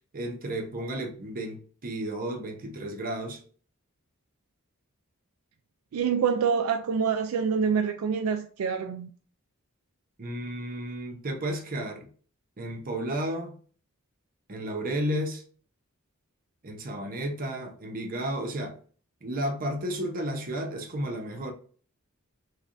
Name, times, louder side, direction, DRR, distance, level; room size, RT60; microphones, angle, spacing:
voice 1, 0.1-3.4 10.2-12.1 12.6-13.6 14.5-15.4 16.6-18.8 19.2-21.5, right 1 dB, 40° right, 0.8 m, -32 dB
voice 2, 5.9-9.1, right 6 dB, 85° right, 0.3 m, -26 dB
3.2 x 3.2 x 2.5 m
head